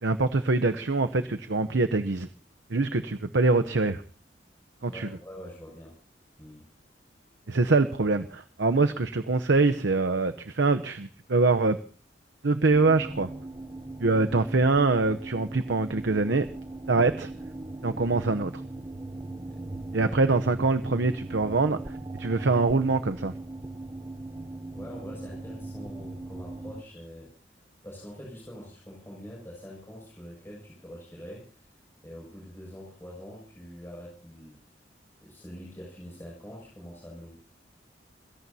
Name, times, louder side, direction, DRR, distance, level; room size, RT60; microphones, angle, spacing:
voice 1, 0.0-2.3 2.7-4.0 4.8-5.1 7.5-11.8 12.4-13.3 14.0-16.5 16.9-17.3 17.8-18.5 19.9-21.8 22.2-23.3, right 3 dB, 80° right, 9 dB, 0.8 m, -24 dB
voice 2, 4.9-6.0 6.4-6.7 19.9-20.2 24.7-27.3 27.8-31.7 32.0-34.6 35.2-37.4, equal, 15° left, -4 dB, 6.7 m, -44 dB
sound 1, 12.7-26.8, right 2 dB, 20° right, 0.8 m, -39 dB
27.5 x 17.0 x 2.8 m, 0.37 s
head